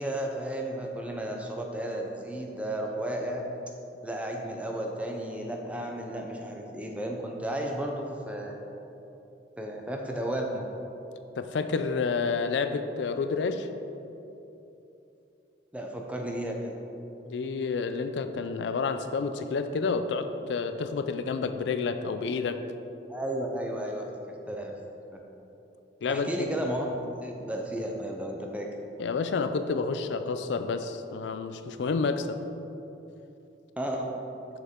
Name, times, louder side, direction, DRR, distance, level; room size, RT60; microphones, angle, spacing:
voice 1, 0.0-3.5 4.0-8.6 9.6-10.7 15.7-16.8 23.1-24.7 25.1-25.2 26.1-28.7 33.8-34.1, right 1 dB, 5° right, 1 dB, 0.5 m, -33 dB
voice 2, 11.4-13.7 17.3-22.6 26.0-26.3 29.0-32.4, left 4 dB, 80° left, 10 dB, 0.4 m, -29 dB
6.6 x 6.4 x 3.6 m, 2.9 s
head